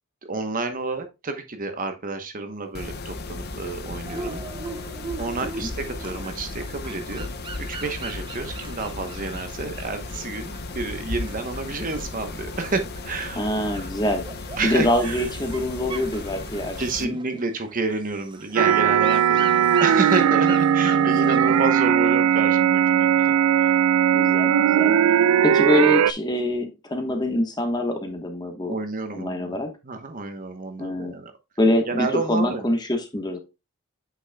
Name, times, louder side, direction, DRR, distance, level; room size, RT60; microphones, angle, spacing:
voice 1, 0.2-4.4 5.2-7.3 7.6-13.4 13.7-13.9 14.6-15.3 15.9-16.1 16.8-23.8 28.7-29.6 29.8-31.3 31.9-32.7, right 3 dB, 40° right, 1.0 m, -30 dB
Mechanisms, 2.7-17.0, left 3 dB, 45° left, 0.7 m, -35 dB
sound 1, 4.1-21.7, right 3 dB, 20° right, 0.6 m, -40 dB
voice 2, 13.3-14.3 14.6-17.2 20.9-21.3 24.1-25.0 25.4-28.7 29.1-29.7 30.8-31.1 31.6-33.4, left 1 dB, 20° left, 1.2 m, -25 dB
sound 2, 18.6-26.1, right 8 dB, 80° right, 0.4 m, -18 dB
8.3 x 6.2 x 2.2 m
head